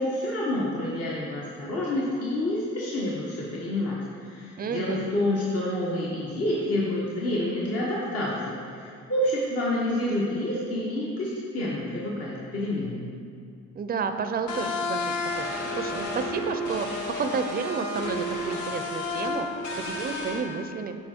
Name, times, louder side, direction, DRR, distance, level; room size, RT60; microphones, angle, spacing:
voice 1, 0.0-13.1, left 1 dB, 50° left, -6 dB, 1.3 m, -28 dB
voice 2, 4.6-5.0 13.7-19.5 19.8-21.0, right 5 dB, 30° right, 8 dB, 0.5 m, -31 dB
sound 1, 14.5-20.4, left 2 dB, 75° left, 1.0 m, -31 dB
7.5 x 4.9 x 4.4 m, 2.4 s
cardioid pair, 90°, 30 cm